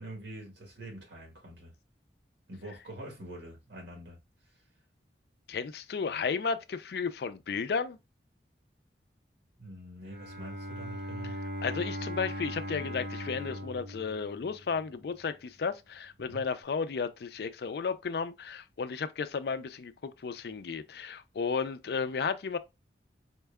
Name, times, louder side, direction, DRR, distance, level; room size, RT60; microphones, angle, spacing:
voice 1, 0.0-1.7 2.5-4.2 9.6-11.4 16.2-16.4, right 1 dB, 80° right, 1.8 m, -45 dB
voice 2, 5.5-8.0 11.6-22.6, left 5 dB, 65° left, 0.4 m, -33 dB
Bowed string instrument, 10.0-15.0, equal, 60° right, 1.1 m, -39 dB
4.4 x 2.2 x 3.4 m
head